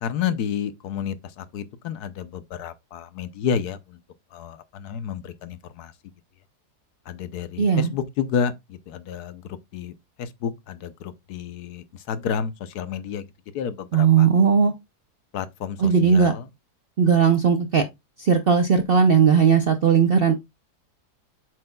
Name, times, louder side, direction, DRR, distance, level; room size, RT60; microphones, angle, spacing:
voice 1, 0.0-4.0 4.3-5.9 7.1-9.4 9.7-13.2 13.5-14.3 15.3-16.4, left 7 dB, 75° left, 1.2 m, -30 dB
voice 2, 7.6-7.9 13.9-14.7 15.8-16.3 17.0-17.8 18.2-20.3, right 6 dB, 60° right, 0.6 m, -17 dB
7.6 x 6.0 x 2.3 m
omnidirectional pair, 1.8 m